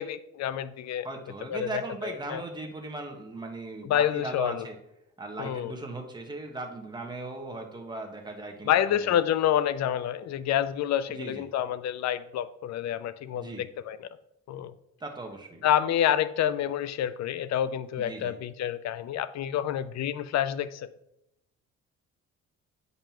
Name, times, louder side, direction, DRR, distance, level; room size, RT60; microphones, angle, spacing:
voice 1, 0.0-1.1 1.5-1.7 2.0-2.4 3.8-4.6 5.4-5.7 8.7-14.1 14.5-14.7 15.6-20.9, left 10 dB, 60° left, 15 dB, 0.5 m, -28 dB
voice 2, 1.0-4.8 5.2-9.2 11.1-11.4 13.3-13.6 15.0-15.7 18.0-18.4, right 2 dB, 15° right, 2 dB, 1.3 m, -38 dB
8.9 x 5.4 x 2.9 m, 0.82 s
cardioid pair, 90°, 30 cm